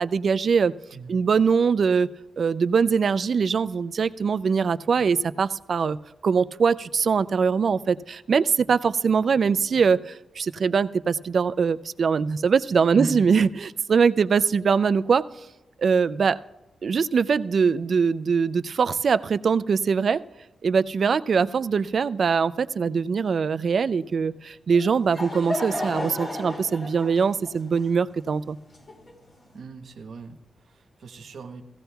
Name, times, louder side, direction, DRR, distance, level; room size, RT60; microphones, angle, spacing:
voice 1, 0.0-0.7 1.1-2.1 2.4-6.0 6.2-15.3 15.8-16.4 16.8-20.2 20.6-28.6, right 5 dB, 50° right, 14 dB, 0.3 m, -22 dB
voice 2, 0.9-1.3 12.9-13.3 29.5-31.6, right 3 dB, 70° right, 6 dB, 1.0 m, -36 dB
Laughter / Crowd, 24.7-29.4, left 1 dB, 35° left, 1.6 m, -33 dB
16.0 x 16.0 x 2.3 m, 1.0 s
wide cardioid pair, 155°, 0 cm